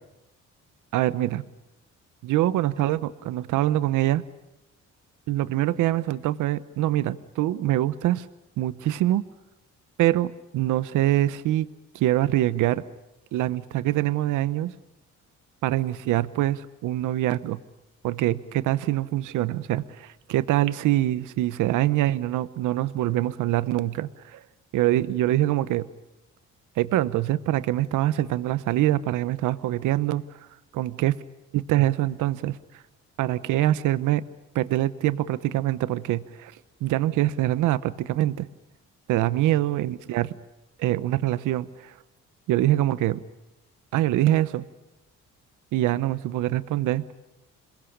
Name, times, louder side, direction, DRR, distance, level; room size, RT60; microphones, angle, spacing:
voice 1, 0.9-1.4 2.2-4.2 5.3-8.3 8.6-9.2 10.0-11.7 11.9-12.8 13.3-14.7 15.6-17.6 18.0-24.4 24.7-25.9 26.8-30.4 30.7-31.1 31.5-32.6 33.2-34.2 34.5-36.5 36.8-38.5 39.1-40.3 40.8-42.0 42.5-43.2 43.9-44.6 45.7-47.0, right 14 dB, 90° right, 15 dB, 0.9 m, -24 dB
27.5 x 22.0 x 10.0 m, 0.92 s
cardioid pair, 90°, 30 cm